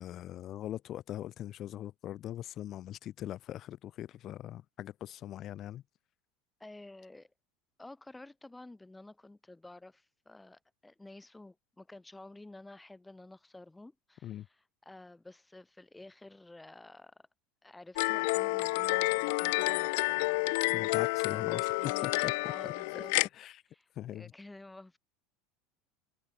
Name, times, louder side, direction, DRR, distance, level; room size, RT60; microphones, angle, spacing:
voice 1, 0.0-5.8 14.2-14.5 20.7-21.6 22.0-22.3 22.6-23.0 23.4-23.5 24.0-24.3, left 12 dB, 50° left, 1.8 m, -41 dB
voice 2, 6.6-7.3 7.8-17.3 17.6-23.2 23.7-25.0, left 2 dB, 10° left, 2.1 m, -51 dB
sound 1, 18.0-23.3, left 27 dB, 70° left, 0.5 m, -30 dB
hypercardioid pair, 85°, 0 cm